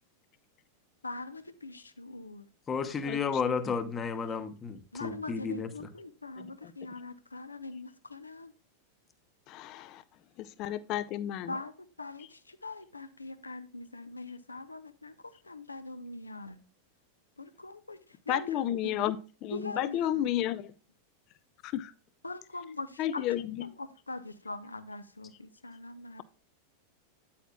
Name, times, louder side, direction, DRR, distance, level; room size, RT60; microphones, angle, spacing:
voice 1, 1.0-2.5 4.9-8.5 11.5-16.6 17.4-19.1 19.5-20.3 22.2-23.2 23.6-26.2, left 2 dB, 80° left, 0.8 m, -42 dB
voice 2, 2.7-5.7, left 5 dB, 20° left, 1.0 m, -32 dB
voice 3, 9.5-10.0 10.4-11.5 18.3-19.2 19.4-20.7 21.6-21.9 23.0-23.6, left 12 dB, 40° left, 0.5 m, -32 dB
9.1 x 8.6 x 2.3 m
figure-of-eight pair, 90°, 0 cm